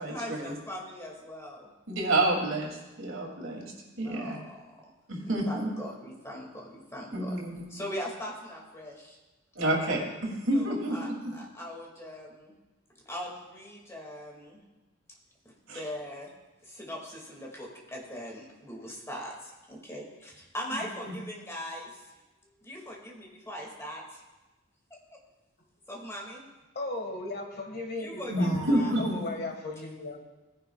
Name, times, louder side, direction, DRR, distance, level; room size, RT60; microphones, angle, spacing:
voice 1, 0.1-1.7 4.0-4.6 5.2-7.4 7.7-9.2 10.5-12.5 13.1-14.6 15.5-16.3 16.6-22.0 22.6-24.2 25.9-26.4 28.0-29.0, equal, 15° left, -2 dB, 2.2 m, -40 dB
voice 2, 1.9-4.4 5.1-5.7 7.1-7.6 9.6-11.1 15.7-15.8 20.7-21.1 28.3-29.2, right 1 dB, 90° right, -1 dB, 2.6 m, -29 dB
voice 3, 26.7-30.2, left 2 dB, 50° left, 3 dB, 1.6 m, -36 dB
17.5 x 10.5 x 2.3 m, 1.1 s
head